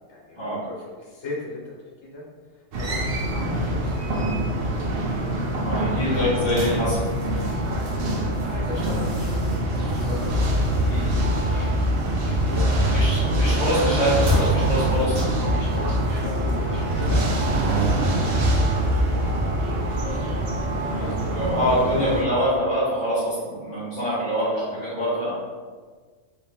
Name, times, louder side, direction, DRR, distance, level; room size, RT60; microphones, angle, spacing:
voice 1, 0.1-2.2 2.5-5.4 6.2-6.9 8.4-13.8 15.3-20.5 21.0-21.2 21.6-21.7 22.0-22.1 24.4-24.9, left 2 dB, 65° left, -4 dB, 1.4 m, -39 dB
sound 1, 2.7-22.2, right 1 dB, 55° right, 0.7 m, -24 dB
voice 2, 5.6-7.0 10.9-11.1 12.9-15.2 20.9-24.4 24.9-25.3, equal, 20° left, -12 dB, 1.3 m, -25 dB
sound 2, 6.4-19.5, left 1 dB, 80° right, 1.3 m, -36 dB
4.1 x 2.9 x 3.5 m, 1.5 s
omnidirectional pair, 1.3 m